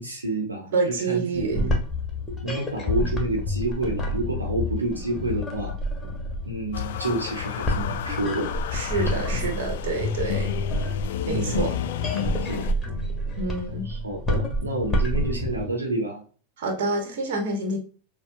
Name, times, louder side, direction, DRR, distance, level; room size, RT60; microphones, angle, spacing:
voice 1, 0.0-1.8 2.4-5.8 6.5-8.5 8.9-9.3 11.2-11.6 12.1-12.6 13.8-16.2, right 2 dB, 80° right, 1.0 m, -29 dB
voice 2, 0.7-1.7 8.7-10.5 11.3-11.7 13.4-13.9 16.6-17.8, right 3 dB, 55° right, 1.3 m, -27 dB
sound 1, 1.3-15.7, left 1 dB, 10° left, 1.2 m, -29 dB
sound 2, 6.7-12.7, left 11 dB, 55° left, 0.4 m, -31 dB
6.6 x 2.2 x 2.7 m
figure-of-eight pair, 90°, 0 cm